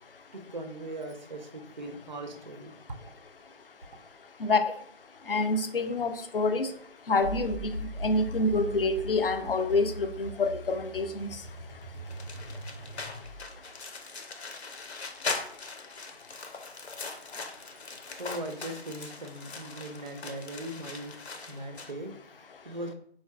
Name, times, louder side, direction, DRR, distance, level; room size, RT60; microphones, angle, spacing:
voice 1, 0.3-2.7 17.1-17.2 17.8-21.2 21.5-22.9, right 1 dB, 45° right, 4 dB, 0.4 m, -40 dB
voice 2, 5.3-6.7 7.1-7.8 8.0-11.3, left 3 dB, 60° left, 8 dB, 0.5 m, -27 dB
sound 1, 7.2-13.6, equal, 25° left, 0.7 m, -40 dB
sound 2, 12.1-21.9, left 4 dB, 85° left, 0.7 m, -40 dB
4.5 x 2.4 x 2.2 m, 0.62 s
figure-of-eight pair, 165°, 32 cm